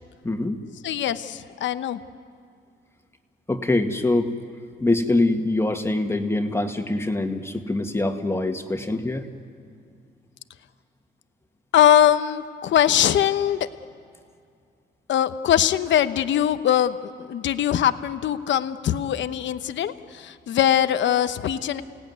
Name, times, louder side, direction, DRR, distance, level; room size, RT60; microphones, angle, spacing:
voice 1, 0.2-0.6 3.5-4.3 4.8-9.3, left 2 dB, 15° left, 4 dB, 1.9 m, -24 dB
voice 2, 0.8-2.0 11.7-13.7 15.1-21.8, left 10 dB, 70° left, 11 dB, 1.0 m, -21 dB
29.0 x 17.5 x 9.6 m, 2.3 s
cardioid pair, 90°, 20 cm